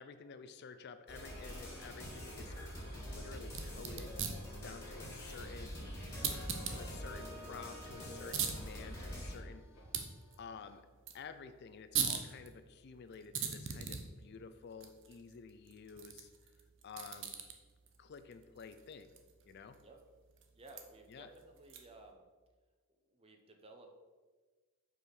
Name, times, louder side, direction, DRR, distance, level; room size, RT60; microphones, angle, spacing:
voice 1, 0.0-2.5 3.1-4.1 4.6-5.8 6.7-9.6 10.4-10.8 11.1-16.3 16.8-17.4 18.0-19.1 19.4-19.8 21.1-21.3, left 5 dB, 50° left, 10 dB, 0.4 m, -51 dB
sound 1, 1.1-9.3, equal, 10° left, 1.8 m, -45 dB
sound 2, 1.2-10.8, equal, 75° left, 1.6 m, -62 dB
sound 3, 3.4-22.1, right 7 dB, 55° right, 0.8 m, -44 dB
voice 2, 20.5-22.3 23.0-23.9, right 2 dB, 25° right, 3 dB, 0.8 m, -56 dB
5.4 x 5.0 x 5.9 m, 1.4 s
head